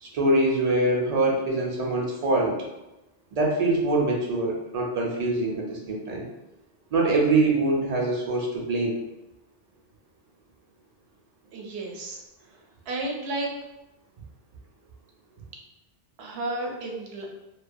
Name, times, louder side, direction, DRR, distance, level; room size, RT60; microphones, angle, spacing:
voice 1, 0.0-2.6 3.3-6.2 6.9-9.0, right 2 dB, 55° right, -2 dB, 0.4 m, -24 dB
voice 2, 11.5-12.2 12.9-13.5 16.2-17.4, right 2 dB, 85° right, 0 dB, 0.8 m, -32 dB
2.3 x 2.1 x 2.5 m, 0.97 s
omnidirectional pair, 1.0 m